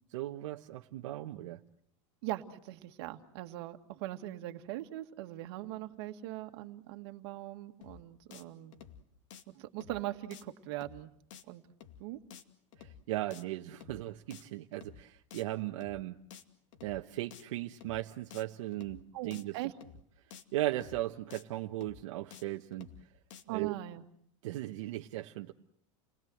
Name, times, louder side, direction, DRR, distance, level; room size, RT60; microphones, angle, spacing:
voice 1, 0.1-1.6 12.8-16.2 16.8-19.6 20.5-22.9 23.5-23.7 24.4-25.5, right 16 dB, 70° right, 3 dB, 1.2 m, -37 dB
voice 2, 2.2-8.7 9.5-11.1 11.5-11.6 12.0-12.2 19.1-19.7 23.5-24.0, right 15 dB, 55° right, 7 dB, 1.9 m, -41 dB
sound 1, 7.8-8.0 8.3-8.4 8.7-9.0 9.3-9.4 9.8-10.0 10.3-10.4 10.7-11.0 11.3-11.4 11.8-12.0 12.3-12.4 12.7-13.0 13.3-13.4 13.8-14.0 14.3-14.4 14.7-15.0 15.3-15.4 15.8-16.0 16.3-16.4 16.7-17.0 17.3-17.4 17.8-18.0 18.3-18.4 18.7-19.0 19.3-19.4 19.8-20.0 20.3-20.4 20.7-21.0 21.3-21.4 21.8-22.0 22.3-22.4 22.7-23.0 23.3-23.4, left 8 dB, 70° left, 2.4 m, -52 dB
30.0 x 20.5 x 7.9 m, 0.69 s
supercardioid pair, 170°, 16 cm